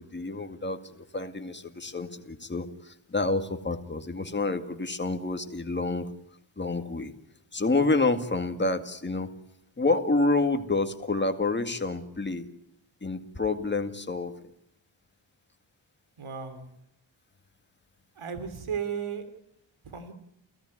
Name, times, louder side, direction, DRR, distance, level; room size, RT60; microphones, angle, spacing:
voice 1, 0.0-6.1 6.6-7.1 7.5-9.3 9.8-12.5 13.0-14.3, left 3 dB, 20° left, 7 dB, 2.1 m, -28 dB
voice 2, 16.2-16.7 18.1-19.2 19.8-20.1, right 7 dB, 85° right, 10 dB, 3.1 m, -34 dB
29.5 x 17.0 x 9.8 m, 0.77 s
wide cardioid pair, 160°, 48 cm